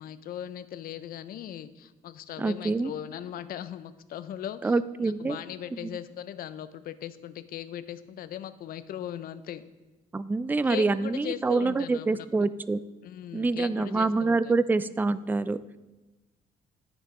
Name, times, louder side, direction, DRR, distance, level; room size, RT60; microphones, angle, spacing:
voice 1, 0.0-9.6 10.6-12.5 13.0-14.5, left 10 dB, 60° left, 14 dB, 0.5 m, -39 dB
voice 2, 2.4-2.9 4.6-5.4 5.8-5.9 10.1-12.8 13.3-15.6, right 3 dB, 10° right, 15 dB, 0.3 m, -26 dB
9.9 x 5.3 x 3.7 m, 1.1 s
supercardioid pair, 70°, 17 cm